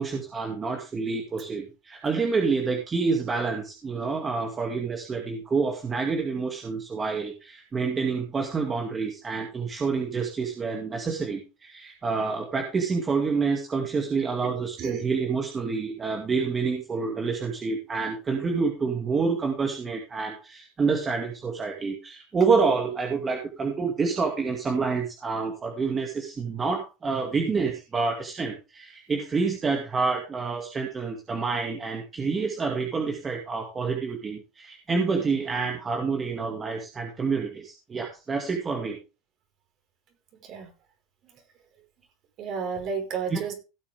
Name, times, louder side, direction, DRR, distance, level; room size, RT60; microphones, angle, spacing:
voice 1, 0.0-39.0 43.3-43.4, right 4 dB, 20° right, 2 dB, 2.3 m, -28 dB
voice 2, 14.8-15.1 40.4-40.7 41.3-41.4 42.4-43.5, right 6 dB, 45° right, 3 dB, 5.0 m, -32 dB
17.0 x 7.2 x 3.6 m, 0.29 s
supercardioid pair, 130°, 0 cm